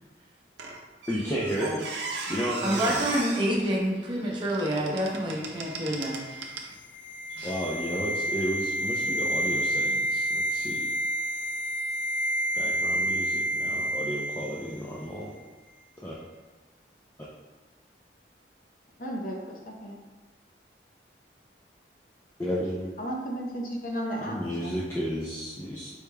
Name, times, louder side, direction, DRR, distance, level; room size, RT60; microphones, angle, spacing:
Squeak, 0.6-6.7 7.4-7.6, right 4 dB, 75° right, 0.6 m, -38 dB
voice 1, 1.1-1.9 2.3-3.1 7.4-10.9 12.5-15.3 16.0-16.1 22.4-22.9 24.3-25.9, equal, 15° left, -6 dB, 0.5 m, -32 dB
voice 2, 2.6-6.4 7.3-7.5, equal, 25° right, -3 dB, 0.8 m, -28 dB
sound 1, 5.5-14.8 15.1-15.2, equal, 75° left, 0.4 m, -29 dB
voice 3, 19.0-19.9 23.0-24.8, equal, 50° left, 0 dB, 0.7 m, -34 dB
5.1 x 4.6 x 2.2 m, 1.2 s
head